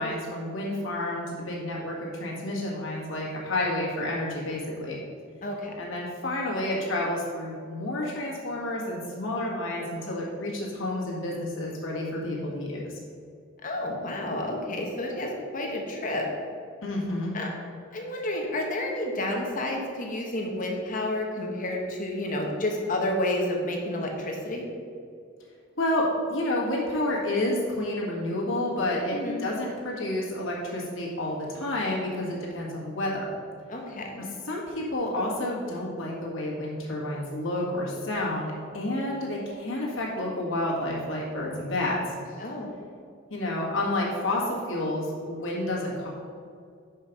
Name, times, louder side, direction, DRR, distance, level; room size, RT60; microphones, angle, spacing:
voice 1, 0.0-5.0 5.8-12.9 16.8-17.3 25.8-33.3 34.5-42.0 43.3-46.1, left 1 dB, 75° left, -4 dB, 1.8 m, -30 dB
voice 2, 5.4-5.7 13.6-16.3 17.3-17.5 17.9-24.6 29.1-29.4 33.7-34.3 42.4-42.7, left 1 dB, 40° left, 1 dB, 1.0 m, -30 dB
5.9 x 5.5 x 5.2 m, 2.3 s
head